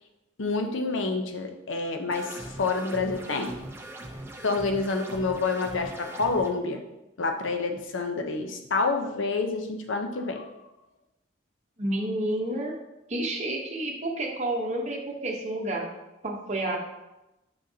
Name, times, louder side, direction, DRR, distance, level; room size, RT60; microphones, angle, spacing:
voice 1, 0.4-3.6 4.4-6.8 7.2-10.4, left 3 dB, 90° left, 5 dB, 0.7 m, -28 dB
sound 1, 2.1-6.5, right 1 dB, 10° right, 0.5 m, -41 dB
voice 2, 11.8-12.7 13.1-15.9 16.2-16.8, right 1 dB, 35° right, 0 dB, 0.9 m, -30 dB
6.4 x 5.7 x 2.7 m, 0.96 s
head